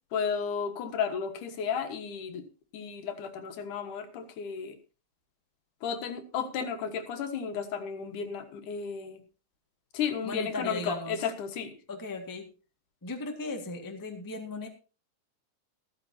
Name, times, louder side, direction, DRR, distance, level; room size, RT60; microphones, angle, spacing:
voice 1, 0.1-2.5 2.7-4.8 5.8-9.2 9.9-11.7, left 6 dB, 85° left, 7 dB, 2.9 m, -33 dB
voice 2, 10.2-11.1 11.9-12.5 13.0-14.7, left 3 dB, 10° left, 3 dB, 1.1 m, -37 dB
14.0 x 14.0 x 2.8 m, 0.33 s
omnidirectional pair, 3.5 m